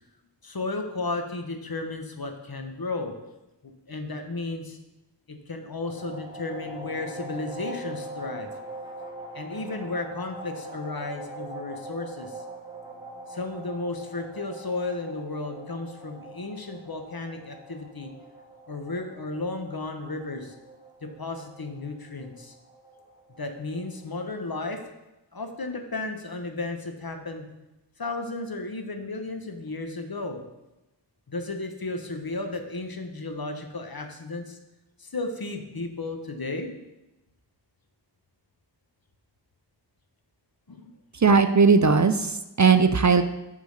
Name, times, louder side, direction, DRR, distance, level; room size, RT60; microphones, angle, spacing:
voice 1, 0.4-3.1 3.6-4.8 5.3-8.5 9.3-12.4 13.3-18.1 18.7-20.5 21.0-22.5 23.3-24.8 25.3-27.5 28.0-30.4 31.3-34.6 35.0-36.7 40.7-40.9, left 2 dB, 55° left, 5 dB, 1.1 m, -34 dB
sound 1, 5.8-24.4, right 1 dB, 10° right, 1.5 m, -42 dB
voice 2, 41.1-43.2, right 5 dB, 40° right, 9 dB, 0.5 m, -18 dB
8.3 x 3.8 x 6.5 m, 0.97 s
wide cardioid pair, 50°, 43 cm